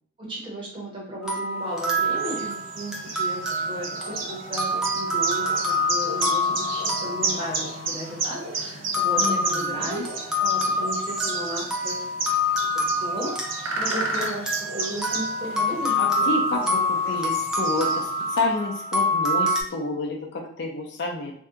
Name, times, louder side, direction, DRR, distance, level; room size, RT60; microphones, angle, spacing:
voice 1, 0.2-12.1 13.0-13.4 13.7-16.3, equal, 25° right, -5 dB, 0.9 m, -35 dB
sound 1, 1.2-8.3 8.9-19.6, left 1 dB, ahead, 0.4 m, -27 dB
sound 2, 1.8-18.4, right 3 dB, 60° right, 0.5 m, -32 dB
voice 2, 9.2-10.0 16.0-21.3, left 2 dB, 50° left, 0 dB, 0.6 m, -29 dB
2.7 x 2.3 x 3.5 m, 0.63 s
head